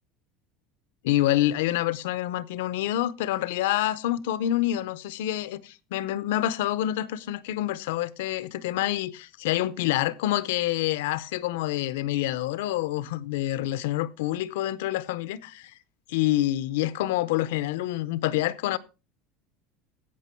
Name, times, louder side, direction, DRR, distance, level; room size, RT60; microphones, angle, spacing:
voice 1, 1.0-15.7 16.1-18.8, left 14 dB, 85° left, 0.7 m, -27 dB
16.0 x 6.1 x 4.5 m
cardioid pair, 180°, 0 cm